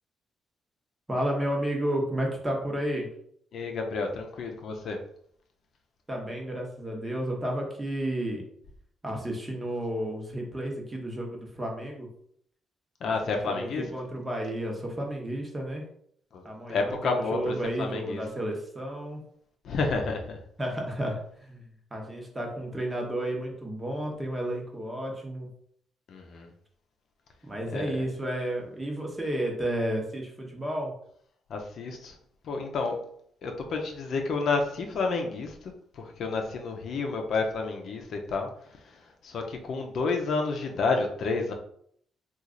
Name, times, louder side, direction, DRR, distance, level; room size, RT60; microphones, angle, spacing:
voice 1, 1.1-3.1 6.1-8.4 9.0-12.1 13.0-15.8 16.4-19.2 20.6-25.5 27.4-30.9, right 1 dB, 15° right, 0 dB, 1.0 m, -32 dB
voice 2, 3.5-5.0 13.0-13.8 16.3-16.4 16.7-18.2 19.6-20.4 26.1-26.5 27.7-27.9 31.5-32.2 32.4-33.0 33.4-38.5 39.2-41.5, left 4 dB, 65° left, 3 dB, 0.6 m, -30 dB
3.0 x 2.4 x 3.8 m, 0.65 s
cardioid pair, 90°, 0 cm